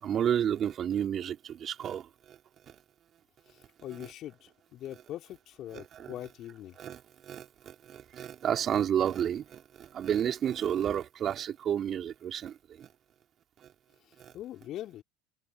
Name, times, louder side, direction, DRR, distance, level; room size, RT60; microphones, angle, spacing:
voice 1, 0.0-2.4 5.7-6.1 6.8-12.9 14.2-14.3, right 9 dB, 40° right, 3.5 m, -31 dB
voice 2, 3.8-6.8 14.3-15.0, left 13 dB, 45° left, 2.9 m, -42 dB
figure-of-eight pair, 70°, 0 cm